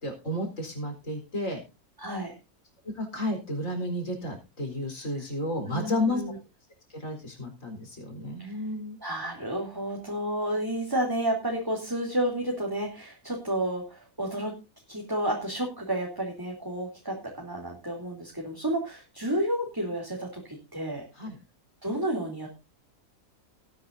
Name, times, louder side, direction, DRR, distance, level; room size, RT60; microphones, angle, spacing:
voice 1, 0.0-1.6 2.8-6.2 6.9-9.0 21.1-21.4, left 1 dB, 60° left, 3 dB, 4.5 m, -32 dB
voice 2, 2.0-2.3 5.7-6.4 8.4-8.6 9.0-14.5 14.9-21.0 21.8-22.5, right 1 dB, 15° right, -1 dB, 2.9 m, -31 dB
18.5 x 10.0 x 2.6 m, 0.28 s
omnidirectional pair, 1.5 m